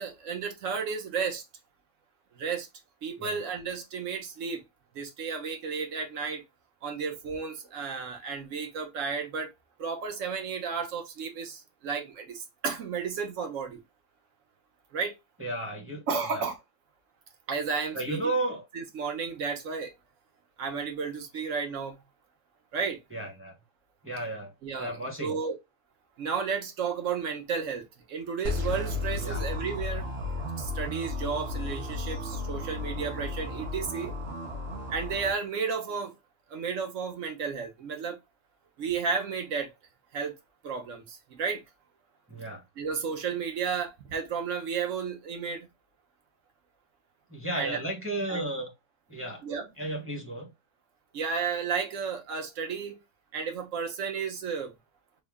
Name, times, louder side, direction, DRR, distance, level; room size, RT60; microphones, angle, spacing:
voice 1, 0.0-1.4 2.4-2.7 3.0-4.6 4.9-6.4 6.8-9.5 9.8-13.8 14.9-15.2 16.1-16.6 17.5-18.2 18.7-19.9 20.6-22.0 22.7-23.0 24.6-25.5 26.2-30.1 30.6-34.1 34.9-36.1 36.5-38.2 38.8-39.7 40.1-40.3 40.6-41.6 42.8-45.7 47.5-47.8 48.3-48.4 49.4-49.7 51.1-53.0 53.3-54.7, right 5 dB, 75° right, 1.2 m, -33 dB
voice 2, 15.4-16.0 16.3-16.4 17.9-18.6 23.1-23.5 24.0-24.5 24.8-25.3 29.2-29.4 42.3-42.6 47.3-48.7 49.1-49.4 49.8-50.5, right 2 dB, 10° right, 0.8 m, -33 dB
sound 1, 28.4-35.3, left 2 dB, 55° right, 1.3 m, -34 dB
3.5 x 2.1 x 3.4 m
omnidirectional pair, 1.3 m